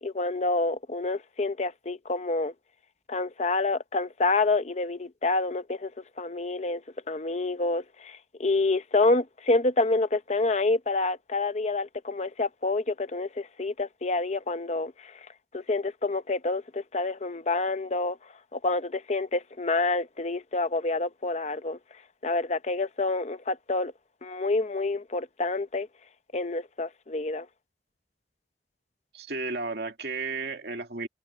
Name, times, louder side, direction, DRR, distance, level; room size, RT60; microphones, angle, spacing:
voice 1, 0.0-2.5 3.1-5.9 6.2-15.3 15.5-18.2 18.5-21.8 22.2-23.9 24.2-25.9 26.3-27.5, left 3 dB, 40° left, 0.7 m, -28 dB
voice 2, 29.1-31.1, right 3 dB, 65° right, 2.5 m, -33 dB
head